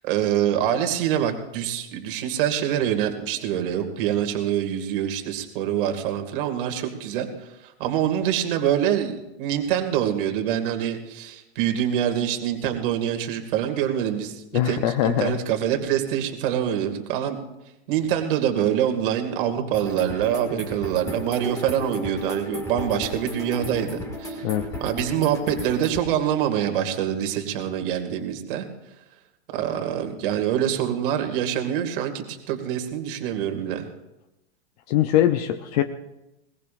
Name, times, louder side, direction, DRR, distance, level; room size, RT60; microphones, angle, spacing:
voice 1, 0.0-17.4 17.9-24.4 24.8-28.6 29.5-33.9, right 10 dB, 50° right, 5 dB, 2.4 m, -25 dB
voice 2, 14.5-15.3 24.4-24.7 34.9-35.8, left 12 dB, 35° left, 8 dB, 0.7 m, -22 dB
sound 1, 19.7-26.0, left 1 dB, 10° left, 2.3 m, -34 dB
21.5 x 20.5 x 2.6 m, 0.92 s
supercardioid pair, 165°, 34 cm